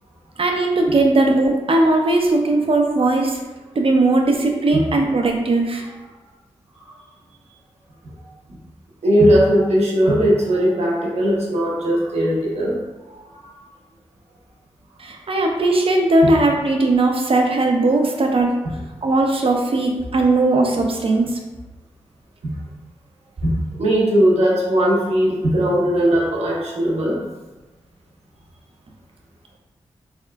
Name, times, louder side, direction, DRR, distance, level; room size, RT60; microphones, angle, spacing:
voice 1, 0.4-3.4 3.8-5.8 15.0-18.5 19.0-21.4, right 2 dB, 55° right, 2 dB, 0.7 m, -18 dB
voice 2, 9.0-12.8 13.1-13.2 22.4-22.5 23.4-23.5 23.8-27.2, equal, 75° right, -5 dB, 1.0 m, -18 dB
3.6 x 3.5 x 2.3 m, 1.1 s
cardioid pair, 40°, 11 cm